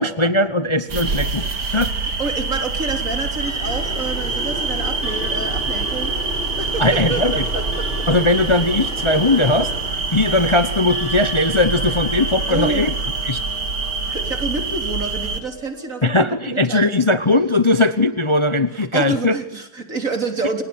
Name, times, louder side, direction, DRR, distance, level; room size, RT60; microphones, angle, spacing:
voice 1, 0.0-1.4 1.7-1.9 6.8-7.4 8.1-9.7 10.1-12.9 13.2-13.4 16.0-19.4, left 2 dB, 20° left, 11 dB, 1.0 m, -19 dB
sound 1, 0.9-15.4, right 4 dB, 85° right, 2.8 m, -25 dB
voice 2, 2.0-7.9 12.5-12.9 14.1-17.1 18.7-20.6, right 3 dB, 50° right, 6 dB, 3.9 m, -28 dB
Clock, 3.3-16.4, left 3 dB, 45° left, 2.7 m, -38 dB
sound 2, 3.6-10.3, equal, ahead, 6.7 m, -34 dB
30.0 x 18.5 x 8.8 m, 0.78 s
omnidirectional pair, 1.8 m